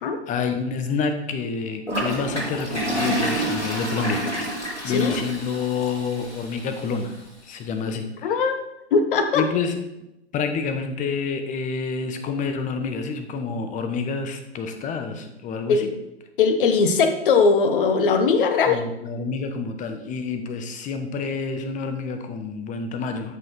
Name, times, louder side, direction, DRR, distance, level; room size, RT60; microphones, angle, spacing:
voice 1, 0.3-4.2 4.8-7.1 7.4-8.3 9.3-9.8 10.3-15.8 18.7-23.4, left 5 dB, 25° left, 7 dB, 1.3 m, -28 dB
Toilet flush, 1.9-6.9, right 1 dB, 90° left, 4.4 m, -28 dB
voice 2, 4.8-5.2 8.2-8.6 8.9-9.4 15.7-15.9 16.4-18.8, left 5 dB, 50° left, 7 dB, 1.6 m, -20 dB
13.0 x 6.3 x 4.4 m, 0.90 s
figure-of-eight pair, 105°, 33 cm